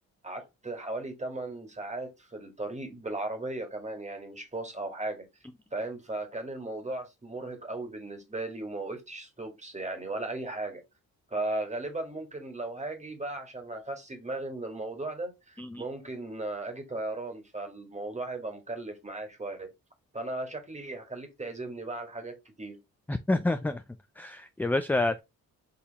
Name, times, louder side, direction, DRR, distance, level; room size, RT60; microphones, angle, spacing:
voice 1, 0.2-5.3 5.7-10.8 11.3-19.7 20.1-22.8, right 2 dB, 20° right, 1.7 m, -36 dB
voice 2, 23.1-23.8 24.2-25.2, left 2 dB, 5° left, 0.3 m, -28 dB
4.1 x 2.8 x 4.0 m
supercardioid pair, 60°, 36 cm